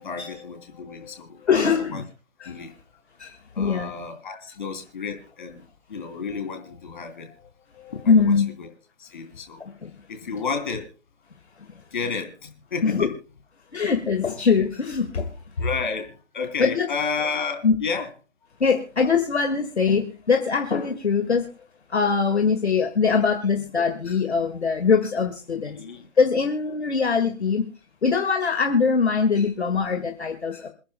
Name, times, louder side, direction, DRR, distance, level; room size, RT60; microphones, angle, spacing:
voice 1, 0.0-2.0 2.4-2.8 3.5-5.6 5.9-8.7 9.0-9.6 10.1-10.9 11.9-13.1 15.6-18.1 25.7-26.1, left 5 dB, 35° left, 5 dB, 3.0 m, -32 dB
voice 2, 1.5-2.0 2.4-2.5 3.2-3.9 8.1-8.5 9.6-9.9 11.6-11.7 12.8-13.1 13.7-15.3 16.6-16.9 17.6-17.8 18.6-21.5 21.9-25.8 26.2-27.7 28.0-30.7, left 5 dB, 50° left, 5 dB, 1.9 m, -22 dB
27.5 x 10.0 x 2.2 m, 0.36 s
figure-of-eight pair, 150°, 41 cm